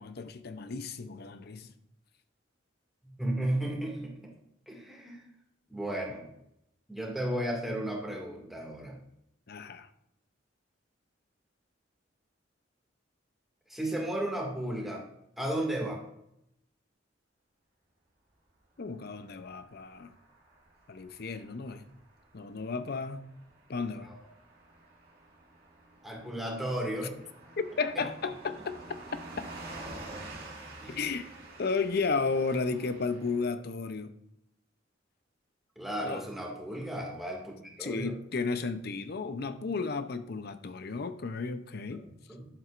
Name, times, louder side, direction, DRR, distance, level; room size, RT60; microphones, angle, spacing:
voice 1, 0.0-1.7 9.5-9.9 18.8-20.1 20.9-21.8 22.3-23.3 23.7-24.1 27.6-28.8 29.4-29.5 30.9-31.3 31.6-34.2 36.0-36.2 37.8-42.0, left 4 dB, 55° left, 0.6 m, -33 dB
voice 2, 3.0-4.3 4.7-5.2 5.7-6.3 6.9-9.0 13.7-15.0 15.4-16.0 26.0-27.1 30.8-31.0 35.8-38.1 42.1-42.5, right 1 dB, ahead, 2.1 m, -34 dB
Car passing by / Truck, 19.1-33.4, right 2 dB, 55° right, 2.2 m, -49 dB
11.0 x 7.5 x 2.5 m
head